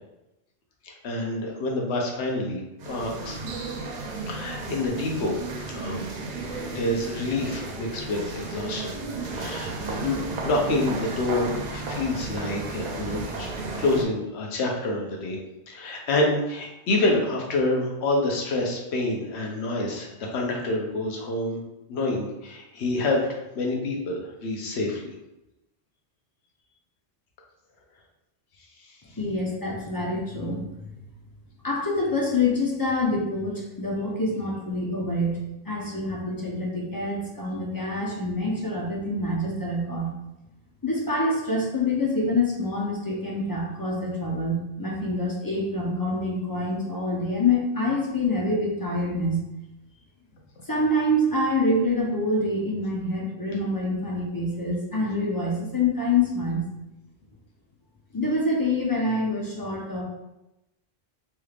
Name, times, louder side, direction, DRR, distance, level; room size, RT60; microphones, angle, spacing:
voice 1, 0.8-3.4 4.2-5.4 5.7-6.1 6.7-9.0 9.3-13.5 13.8-15.4 15.7-21.6 21.9-25.0, left 2 dB, 75° left, 0 dB, 0.9 m, -27 dB
sound 1, 2.8-14.0, right 3 dB, 55° right, 0.5 m, -34 dB
voice 2, 29.2-30.6 31.6-40.1 40.8-49.4 50.6-56.7 58.1-60.0, left 2 dB, 30° left, -3 dB, 0.4 m, -26 dB
3.2 x 3.2 x 2.4 m, 0.93 s
omnidirectional pair, 1.2 m